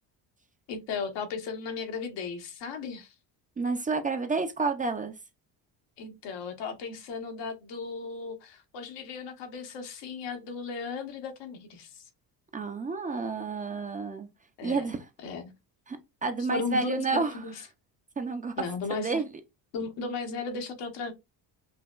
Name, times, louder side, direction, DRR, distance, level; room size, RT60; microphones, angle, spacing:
voice 1, 0.7-3.1 6.0-12.0 14.6-14.9 15.2-15.5 16.5-17.5 18.6-19.2 19.7-21.1, left 4 dB, 80° left, 1.2 m, -36 dB
voice 2, 3.6-5.1 12.5-14.3 14.6-15.1 15.9-17.3 18.2-18.6 19.0-19.3, right 4 dB, 20° right, 0.4 m, -30 dB
5.6 x 2.2 x 2.4 m
cardioid pair, 125°, 42 cm